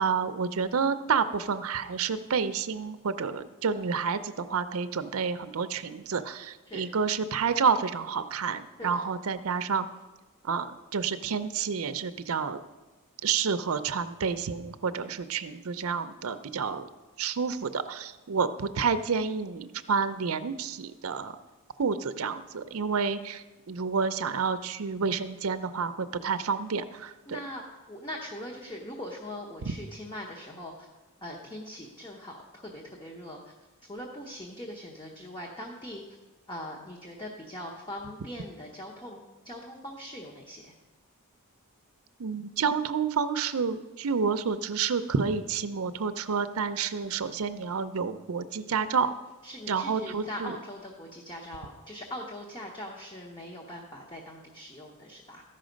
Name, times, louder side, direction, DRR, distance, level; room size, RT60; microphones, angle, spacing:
voice 1, 0.0-9.9 10.4-12.6 13.2-16.9 17.2-21.3 21.8-27.4 29.6-29.7 42.2-49.1 49.7-50.6, right 5 dB, 75° right, 11 dB, 0.5 m, -29 dB
voice 2, 27.3-30.9 31.2-33.4 33.9-36.0 36.5-40.7 49.4-55.4, left 1 dB, 20° left, -1 dB, 0.9 m, -41 dB
14.0 x 5.7 x 5.2 m, 1.2 s
head